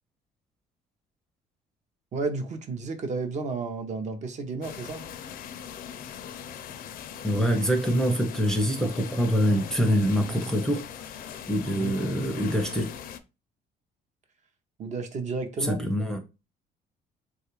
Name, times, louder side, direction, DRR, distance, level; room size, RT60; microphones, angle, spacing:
voice 1, 2.1-5.0 11.7-12.0 14.8-15.8, right 4 dB, 45° right, 0.6 m, -32 dB
sound 1, 4.6-13.2, left 9 dB, 60° left, 0.4 m, -40 dB
voice 2, 7.2-10.8 11.5-12.9 15.6-16.2, equal, 5° left, 0.5 m, -25 dB
3.2 x 2.3 x 3.0 m
cardioid pair, 110°, 17 cm